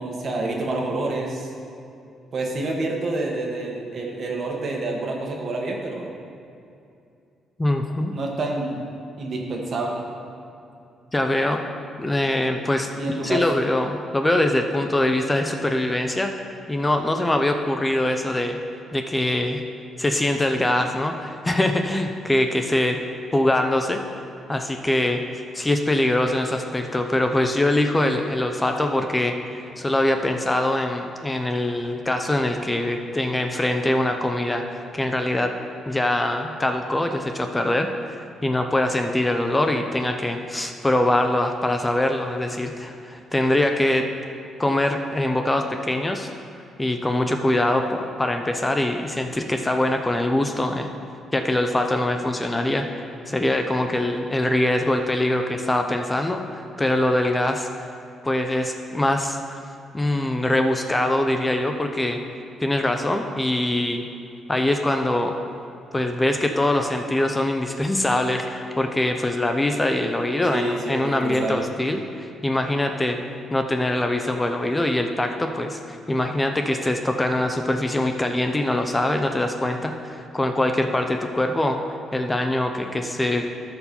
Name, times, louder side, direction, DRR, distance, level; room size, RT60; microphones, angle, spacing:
voice 1, 0.0-1.5 2.3-6.2 8.1-8.8 9.2-10.0 13.0-13.5 70.5-71.7, right 2 dB, 50° right, 0 dB, 1.6 m, -28 dB
voice 2, 7.6-8.1 11.1-11.6 12.0-12.9 13.2-16.3 16.7-18.6 18.9-19.6 20.0-23.0 23.3-24.0 24.5-25.2 25.5-35.5 35.9-44.1 44.6-46.3 46.8-50.9 51.3-52.9 53.3-57.9 58.2-59.6 59.9-62.2 62.6-64.0 64.5-65.4 65.9-73.2 73.5-81.8 82.1-83.5, left 1 dB, 15° left, 5 dB, 0.7 m, -23 dB
13.0 x 4.6 x 5.5 m, 2.6 s
cardioid pair, 90°, 0 cm